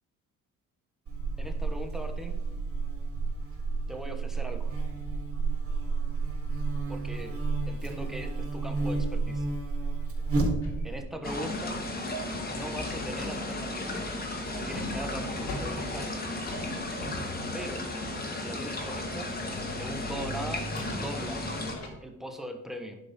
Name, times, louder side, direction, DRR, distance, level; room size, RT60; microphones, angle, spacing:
Buzz, 1.1-11.0, right 3 dB, 45° right, 3.8 m, -31 dB
voice 1, 1.4-2.3 3.9-4.7 6.9-7.3 7.7-9.4 10.8-11.8 12.5-14.0 14.5-16.3 17.5-17.9 18.3-19.3 19.8-21.5 22.0-23.0, right 1 dB, ahead, 4 dB, 1.4 m, -40 dB
sound 1, 10.6-13.5 13.9-18.3 20.0-20.1 20.6-21.9, left 1 dB, 65° left, 2.6 m, -42 dB
sound 2, 11.2-21.7, left 2 dB, 30° left, 2.1 m, -34 dB
11.0 x 4.9 x 5.5 m, 0.97 s
cardioid pair, 90°, 30 cm